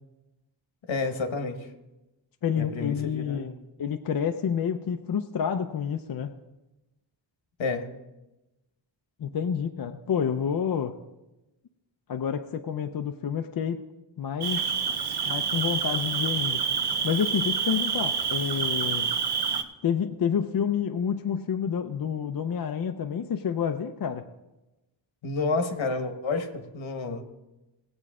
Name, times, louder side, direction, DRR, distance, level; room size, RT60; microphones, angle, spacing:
voice 1, 0.9-1.7 2.6-3.5 7.6-7.9 25.2-27.2, left 3 dB, 75° left, 6 dB, 1.3 m, -30 dB
voice 2, 2.4-3.5 3.8-6.3 9.2-10.9 12.1-13.8 14.2-14.6 15.3-16.7 17.0-19.1 19.8-24.2, left 7 dB, 50° left, 6 dB, 0.5 m, -28 dB
Cricket, 14.4-19.6, right 7 dB, 55° right, 0.8 m, -28 dB
17.5 x 8.0 x 3.6 m, 1.0 s
wide cardioid pair, 140°, 46 cm